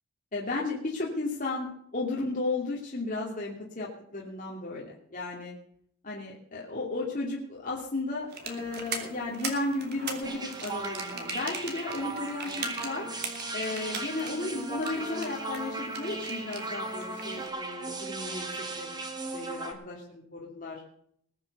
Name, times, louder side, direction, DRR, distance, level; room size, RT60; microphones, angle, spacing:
voice 1, 0.3-5.5 6.0-13.1 13.5-18.4 18.8-18.9 19.2-20.8, left 2 dB, 40° left, -4 dB, 2.7 m, -34 dB
sound 1, 8.3-17.5, right 4 dB, 50° right, 3.2 m, -41 dB
sound 2, 10.2-19.7, right 2 dB, 20° right, 2.0 m, -37 dB
21.0 x 7.7 x 6.7 m, 0.68 s
head